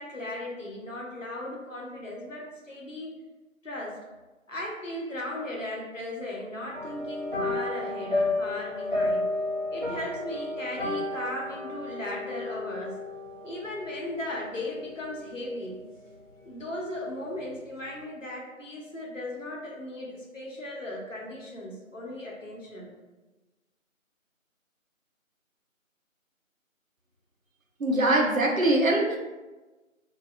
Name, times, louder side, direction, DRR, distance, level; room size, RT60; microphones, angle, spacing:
voice 1, 0.0-3.1 3.6-4.0 4.5-9.3 9.7-13.0 13.4-15.8 16.4-22.9, left 1 dB, 65° left, -2 dB, 0.9 m, -37 dB
sound 1, 6.7-16.3 16.6-17.0 17.3-17.4, left 2 dB, 40° right, 0.9 m, -33 dB
voice 2, 27.8-29.2, right 1 dB, 75° right, 0 dB, 0.8 m, -22 dB
2.7 x 2.3 x 3.4 m, 1.1 s
figure-of-eight pair, 175°, 41 cm